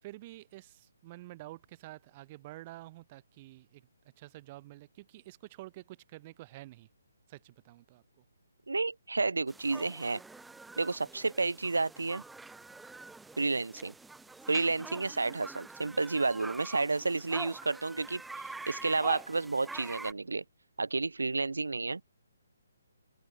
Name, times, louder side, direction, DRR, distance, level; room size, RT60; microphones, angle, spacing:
voice 1, 0.0-3.9 4.2-6.9 7.3-8.3, right 18 dB, 30° right, 5.4 m, -49 dB
voice 2, 8.7-10.2 10.8-12.2 13.4-13.9 14.5-18.2 18.7-20.4 20.8-22.0, right 3 dB, 70° right, 0.7 m, -31 dB
sound 1, 9.5-20.1, right 3 dB, 5° right, 0.3 m, -46 dB
open air
figure-of-eight pair, 140°, 0 cm